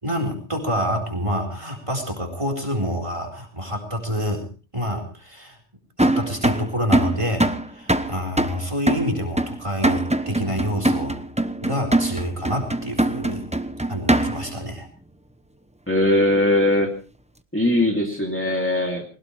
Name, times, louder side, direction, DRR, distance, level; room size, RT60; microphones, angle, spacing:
voice 1, 0.0-4.5 4.7-5.6 6.0-11.2 11.6-13.4 13.9-14.9, equal, 25° right, 4 dB, 4.5 m, -27 dB
sound 1, 6.0-14.6, right 1 dB, 5° right, 0.8 m, -23 dB
voice 2, 15.9-16.9 17.5-19.0, left 1 dB, 10° left, 0 dB, 2.9 m, -20 dB
22.0 x 19.5 x 3.3 m, 0.35 s
omnidirectional pair, 1.2 m